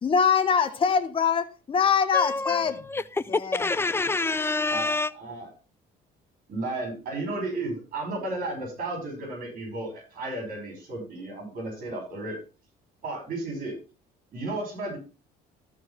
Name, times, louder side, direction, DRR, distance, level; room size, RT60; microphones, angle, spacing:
voice 1, 0.0-2.8 3.3-3.7, left 6 dB, 30° left, 1.2 m, -23 dB
voice 2, 2.1-5.1, left 3 dB, 15° left, 0.6 m, -27 dB
voice 3, 4.6-5.5 6.5-12.4 13.0-13.7 14.3-15.0, right 2 dB, 55° right, 5.5 m, -33 dB
13.0 x 4.7 x 5.7 m
cardioid pair, 110°, 17 cm